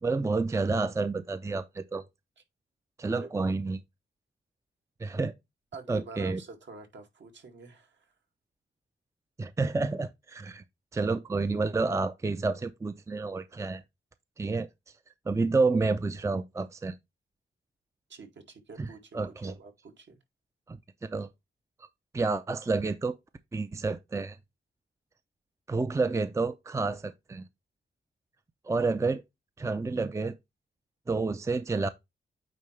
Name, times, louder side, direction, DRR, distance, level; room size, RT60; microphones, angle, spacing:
voice 1, 0.0-2.1 3.0-3.8 5.0-5.3 5.9-6.4 9.4-10.6 10.9-13.8 14.4-14.7 15.3-17.0 18.8-18.9 19.1-19.5 20.7-21.3 22.1-23.2 23.5-24.4 25.7-27.4 28.6-29.2 29.6-30.4 31.1-31.9, right 3 dB, 15° right, 0.5 m, -29 dB
voice 2, 5.7-8.1 18.1-19.1 19.4-20.2, right 4 dB, 65° right, 2.1 m, -47 dB
9.0 x 3.8 x 3.2 m
wide cardioid pair, 130°, 20 cm